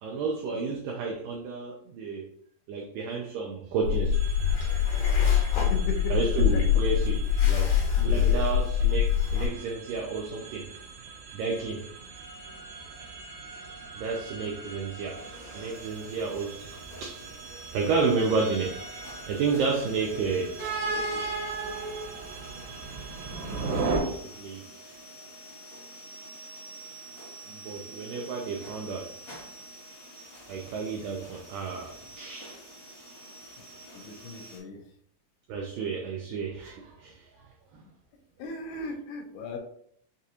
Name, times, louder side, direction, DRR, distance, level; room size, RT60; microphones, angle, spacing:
voice 1, 0.0-2.3 2.7-4.2 5.3-5.5 6.1-7.7 8.0-10.7 11.3-11.9 14.0-15.2 15.5-18.8 19.3-20.6 20.8-21.3 23.9-24.6 27.5-29.1 30.5-32.6 35.5-37.3 37.7-37.8, right 4 dB, 85° right, 0 dB, 1.9 m, -31 dB
sound 1, 3.8-9.5, left 9 dB, 65° left, 1.9 m, -24 dB
sound 2, 4.1-24.0, right 4 dB, 70° right, 2.3 m, -38 dB
voice 2, 5.7-6.2 6.5-6.6 8.0-8.4 33.9-34.9 38.4-39.6, left 2 dB, 80° left, 2 dB, 2.6 m, -37 dB
sound 3, 15.0-34.6, right 1 dB, 40° left, 1.2 m, -47 dB
6.6 x 2.5 x 2.7 m, 0.64 s
omnidirectional pair, 4.5 m